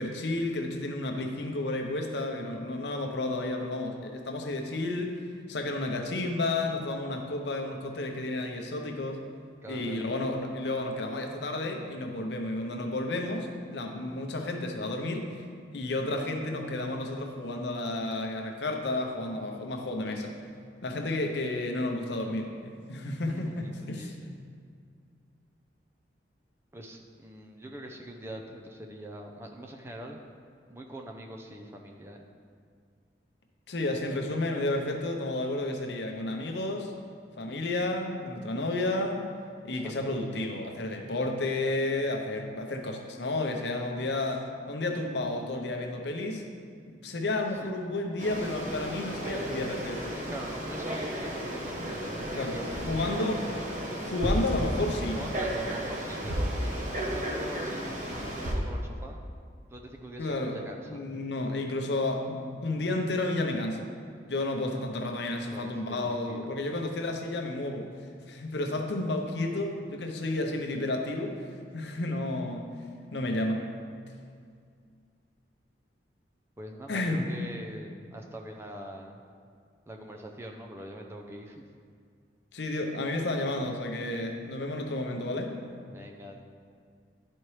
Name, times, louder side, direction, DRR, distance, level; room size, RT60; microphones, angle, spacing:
voice 1, 0.0-5.1 5.5-9.2 9.7-15.3 15.7-20.3 20.8-24.4 33.7-36.9 37.4-39.2 39.6-46.5 46.9-50.2 52.4-52.6 52.9-53.4 54.0-55.2 55.6-55.7 60.2-63.9 64.3-67.9 68.3-71.4 71.7-72.7 73.1-73.6 76.9-77.3 82.5-85.6, left 2 dB, 70° left, 3 dB, 0.7 m, -31 dB
voice 2, 9.6-10.1 22.1-22.3 23.3-24.2 26.7-30.2 30.7-32.2 39.8-39.9 47.6-47.7 49.3-49.4 50.3-53.6 55.2-59.2 59.7-61.0 65.5-66.5 76.6-79.2 79.9-81.6 85.9-86.4, right 1 dB, 15° right, 1 dB, 0.4 m, -43 dB
Frog, 48.2-58.5, equal, 40° right, 0.9 m, -33 dB
10.5 x 4.4 x 3.2 m, 2.2 s
head